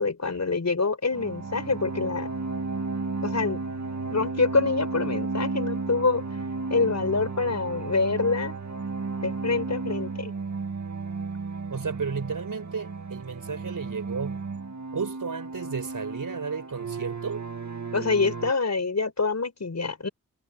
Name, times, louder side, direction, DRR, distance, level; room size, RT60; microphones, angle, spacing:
voice 1, 0.0-2.3 3.2-3.6 4.1-6.2 6.7-8.5 9.2-10.3 17.9-20.1, left 4 dB, 55° left, 5.9 m, -26 dB
sound 1, 1.1-18.5, right 4 dB, 55° right, 2.1 m, -33 dB
voice 2, 11.7-14.4 14.9-17.4, right 5 dB, 70° right, 5.8 m, -33 dB
wide cardioid pair, 65°, 33 cm